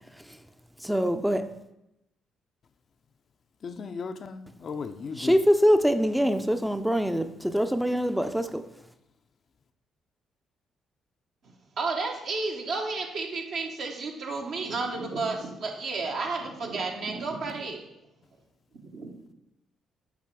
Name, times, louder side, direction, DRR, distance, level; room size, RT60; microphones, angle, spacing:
voice 1, 0.8-1.5 5.2-8.6, equal, 5° right, 8 dB, 0.5 m, -24 dB
voice 2, 3.6-5.4, left 5 dB, 55° left, 8 dB, 0.5 m, -36 dB
voice 3, 11.8-17.8 18.9-19.2, right 3 dB, 65° right, 0 dB, 1.2 m, -32 dB
8.5 x 3.3 x 4.7 m, 0.86 s
hypercardioid pair, 50°, 0 cm